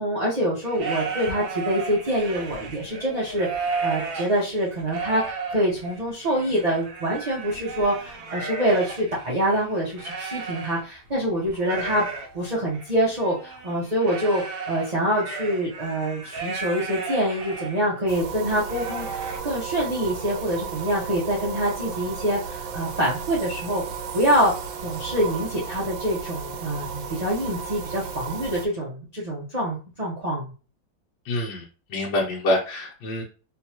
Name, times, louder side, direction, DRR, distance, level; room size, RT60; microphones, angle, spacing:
voice 1, 0.0-12.0 12.3-23.8 24.1-24.5 24.8-30.5, equal, 35° right, -6 dB, 0.7 m, -25 dB
sound 1, 0.6-11.1 11.4-17.8 18.2-18.3 18.7-19.4, right 4 dB, 65° right, 1.3 m, -34 dB
sound 2, 18.1-28.7, right 6 dB, 80° right, 1.4 m, -34 dB
voice 2, 31.2-33.2, left 1 dB, 75° left, -3 dB, 1.5 m, -26 dB
3.4 x 3.0 x 2.9 m, 0.35 s
omnidirectional pair, 2.1 m